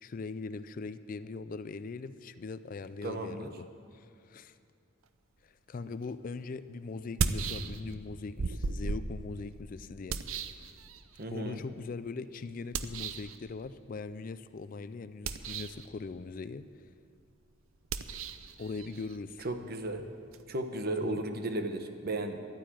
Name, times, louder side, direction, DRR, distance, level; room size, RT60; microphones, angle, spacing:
voice 1, 0.0-4.6 5.4-10.2 11.3-16.7 18.6-19.5 21.0-21.2, left 4 dB, 40° left, 13 dB, 0.4 m, -41 dB
voice 2, 3.0-3.5 11.2-11.6 19.4-20.0 20.5-22.4, right 2 dB, 45° right, 7 dB, 1.0 m, -34 dB
sound 1, 6.0-6.1 7.0-8.1 8.4-11.2 12.7-13.4 15.1-15.9 17.8-20.4, right 4 dB, 80° right, 0.6 m, -36 dB
12.0 x 9.3 x 8.9 m, 2.4 s
head